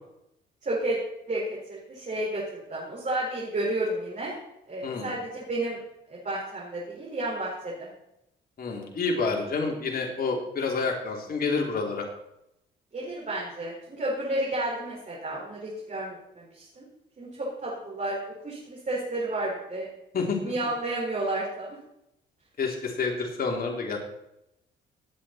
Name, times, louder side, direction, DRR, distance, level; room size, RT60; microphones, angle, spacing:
voice 1, 0.6-1.0 1.3-4.4 4.7-5.8 6.1-7.9 12.9-16.8 17.2-19.9 20.4-21.8, right 1 dB, 40° right, -5 dB, 4.9 m, -31 dB
voice 2, 8.6-12.1 20.1-20.5 22.6-24.0, left 4 dB, 50° left, 1 dB, 3.2 m, -28 dB
18.5 x 8.3 x 4.3 m, 0.82 s
cardioid pair, 90°, 20 cm